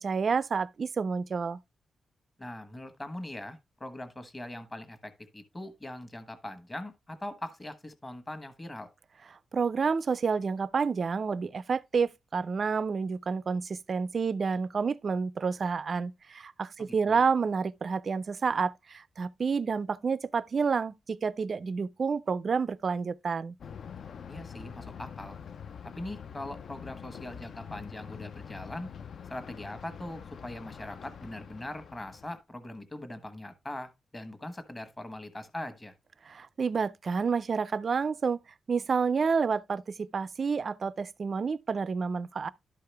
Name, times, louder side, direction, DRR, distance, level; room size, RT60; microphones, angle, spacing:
voice 1, 0.0-1.6 9.5-23.5 36.2-38.4 38.7-42.5, right 5 dB, 40° right, 0.3 m, -29 dB
voice 2, 2.4-8.9 16.8-17.2 24.3-25.4 25.9-28.9 29.3-35.9, left 1 dB, 15° left, 1.2 m, -41 dB
Thunder, 23.6-32.4, left 7 dB, 55° left, 0.4 m, -45 dB
12.0 x 4.8 x 3.3 m
wide cardioid pair, 170°, 0 cm